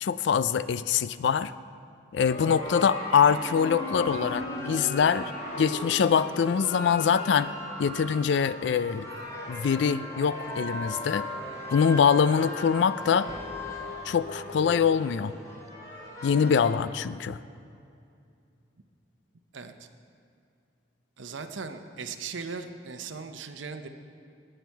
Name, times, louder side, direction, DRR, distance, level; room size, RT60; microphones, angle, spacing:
voice 1, 0.0-1.5 2.1-5.3 5.6-7.5 7.8-9.1 9.5-11.3 11.7-13.3 14.1-15.3 16.2-17.4, left 7 dB, 70° left, 15 dB, 0.3 m, -24 dB
sound 1, 2.2-6.9, left 1 dB, 35° left, 2.0 m, -38 dB
sound 2, 2.6-16.7, left 2 dB, 20° left, 2.4 m, -39 dB
voice 2, 19.5-19.9 21.2-23.9, right 5 dB, 80° right, 8 dB, 0.7 m, -38 dB
18.5 x 7.9 x 4.6 m, 2.5 s
head